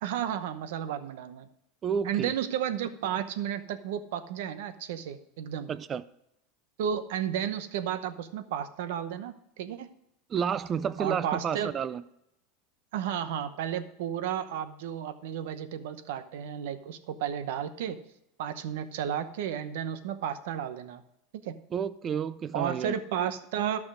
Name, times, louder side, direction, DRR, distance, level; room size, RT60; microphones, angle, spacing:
voice 1, 0.0-1.5 2.0-5.7 6.8-9.9 11.0-11.7 12.9-18.0 18.4-21.0 21.4-21.6 22.5-23.8, right 9 dB, 70° right, 11 dB, 0.9 m, -33 dB
voice 2, 1.8-2.3 5.7-6.0 10.3-12.0 21.7-23.0, right 7 dB, 20° right, 16 dB, 0.3 m, -30 dB
13.0 x 6.1 x 4.9 m, 0.79 s
supercardioid pair, 165°, 0 cm